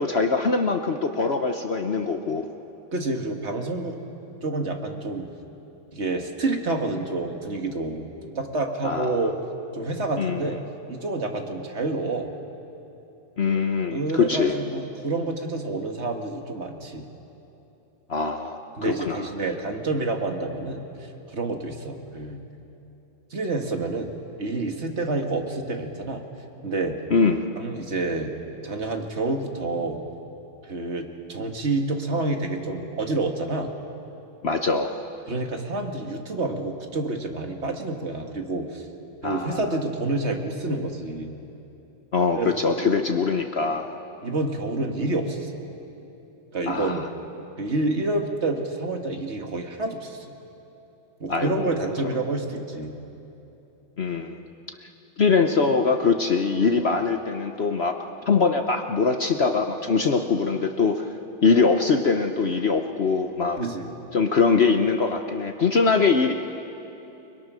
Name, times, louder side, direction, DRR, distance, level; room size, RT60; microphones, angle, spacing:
voice 1, 0.0-2.4 8.8-9.2 10.2-10.5 13.4-14.6 18.1-19.3 27.1-27.4 34.4-34.9 39.2-39.6 42.1-43.9 46.7-47.0 51.3-51.9 54.0-54.4 55.2-58.0 58.3-61.1 61.4-63.6 64.1-66.3, left 4 dB, 60° left, 5 dB, 0.6 m, -22 dB
voice 2, 2.9-3.9 4.4-5.3 5.9-9.3 9.7-10.6 10.9-12.3 13.9-17.1 18.8-22.4 23.3-24.1 24.4-26.2 26.6-27.0 27.6-28.3 28.6-30.0 30.6-33.7 35.3-38.9 39.2-41.3 42.3-42.5 42.8-42.9 44.2-45.5 46.5-47.0 47.6-50.3 51.2-52.9 56.9-57.0 63.6-63.9, right 2 dB, 35° right, 3 dB, 1.8 m, -28 dB
29.5 x 21.5 x 6.3 m, 2.9 s
omnidirectional pair, 2.3 m